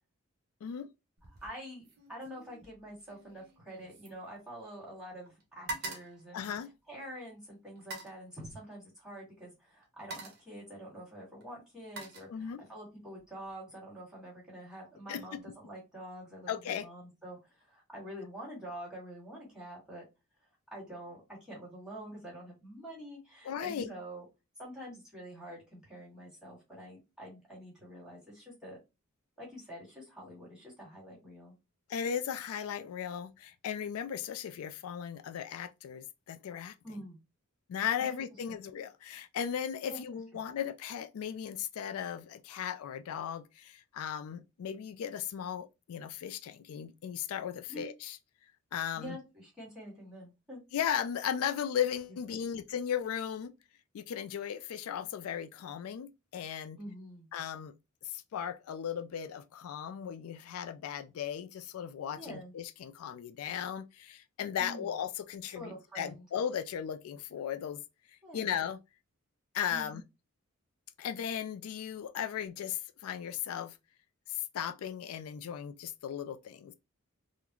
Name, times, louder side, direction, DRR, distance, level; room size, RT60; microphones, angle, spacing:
sound 1, 1.2-1.6 1.8-5.0 5.2-7.1 7.7-8.2 9.3-9.4 9.8-10.5 11.4-12.8 13.2-13.5, right 2 dB, 50° right, 1.0 m, -45 dB
voice 1, 1.4-6.5 6.9-20.0 20.7-24.2 24.6-28.8 29.4-31.5 36.8-37.2 38.0-38.2 39.9-40.0 47.7-47.9 48.9-50.6 52.3-52.4 56.8-57.3 62.1-62.5 64.6-64.9 65.5-66.3 68.2-68.6 69.7-70.0, equal, 5° right, 1.9 m, -46 dB
voice 2, 6.3-6.7 12.3-12.7 15.1-15.4 16.5-16.9 23.4-23.9 31.9-36.8 37.7-48.2 48.7-49.2 50.7-53.5 53.9-56.8 57.3-57.7 58.0-67.8 68.3-68.8 69.5-70.0 71.0-73.8 74.3-76.7, left 8 dB, 90° left, 0.3 m, -36 dB
3.7 x 2.1 x 3.0 m
head